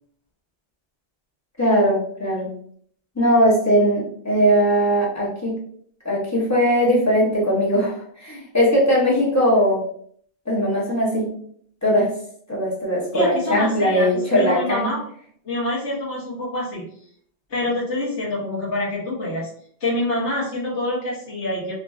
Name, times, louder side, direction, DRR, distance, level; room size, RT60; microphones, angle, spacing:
voice 1, 1.6-2.6 3.2-5.6 6.0-9.8 10.5-11.4 11.8-12.1 12.5-14.9, equal, 15° left, -4 dB, 0.7 m, -19 dB
voice 2, 13.1-15.0 15.4-16.8 17.5-19.5 19.8-21.7, left 1 dB, 90° left, -6 dB, 1.3 m, -26 dB
2.9 x 2.5 x 2.3 m, 0.63 s
omnidirectional pair, 1.2 m